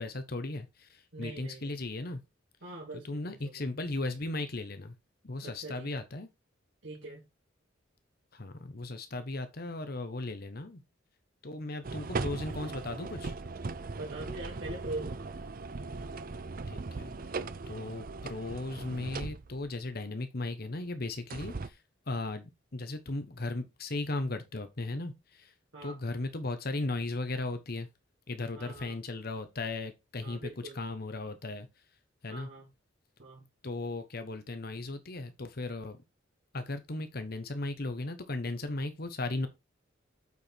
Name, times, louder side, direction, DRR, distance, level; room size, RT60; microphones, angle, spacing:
voice 1, 0.0-2.2 3.1-4.9 5.2-6.3 8.3-10.8 11.4-13.3 16.7-17.1 17.7-21.8 22.1-25.5 25.8-27.9 28.3-30.5 30.7-31.7 32.2-32.5 33.6-36.0 36.5-39.5, left 2 dB, 50° left, 1.0 m, -36 dB
voice 2, 1.1-1.8 2.6-3.7 5.4-5.9 6.8-7.3 14.0-15.4 25.7-26.0 28.5-29.0 30.2-30.8 32.3-32.7 33.2-33.4, right 2 dB, 75° right, 2.4 m, -43 dB
sound 1, 11.8-19.7 21.3-21.7, right 3 dB, 45° right, 0.5 m, -39 dB
8.2 x 4.7 x 4.5 m
head